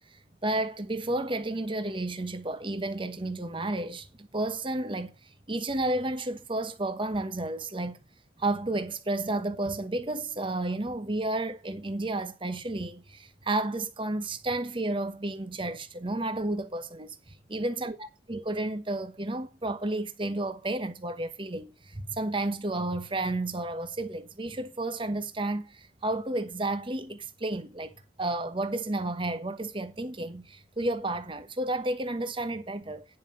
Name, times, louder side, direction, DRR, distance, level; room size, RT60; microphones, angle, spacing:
voice 1, 0.4-5.1 5.5-8.0 8.4-33.1, right 2 dB, 30° right, 1.0 m, -32 dB
10.0 x 5.5 x 5.7 m
head